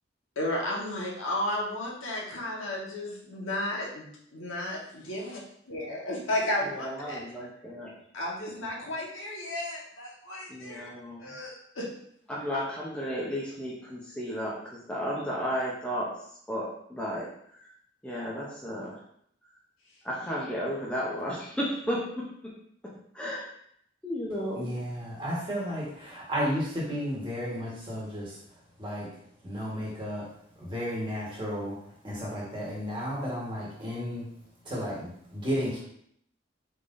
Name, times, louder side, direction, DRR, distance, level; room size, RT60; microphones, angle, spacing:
voice 1, 0.3-5.4 5.7-7.2 8.1-10.9 11.2-11.9, left 1 dB, 85° left, -3 dB, 1.3 m, -33 dB
voice 2, 6.7-7.9 10.5-11.3 12.3-16.1 16.5-17.7 18.0-19.0 20.0-22.2 23.1-23.5 24.0-24.7, equal, 5° left, -5 dB, 0.7 m, -33 dB
voice 3, 24.5-28.3 28.8-29.1 29.4-30.2 30.6-31.7 32.0-34.2 34.6-35.8, equal, 25° right, -5 dB, 1.4 m, -33 dB
4.9 x 3.7 x 2.6 m, 0.69 s
head